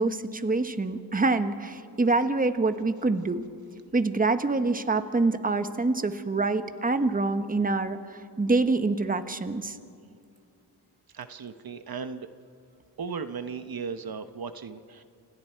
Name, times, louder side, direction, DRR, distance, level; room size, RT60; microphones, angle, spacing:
voice 1, 0.0-3.4 3.9-9.8, right 3 dB, 20° right, 9 dB, 1.1 m, -26 dB
voice 2, 11.1-12.3 13.0-15.0, right 5 dB, 60° right, 10 dB, 1.0 m, -36 dB
29.5 x 27.0 x 4.6 m, 2.4 s
wide cardioid pair, 90°, 42 cm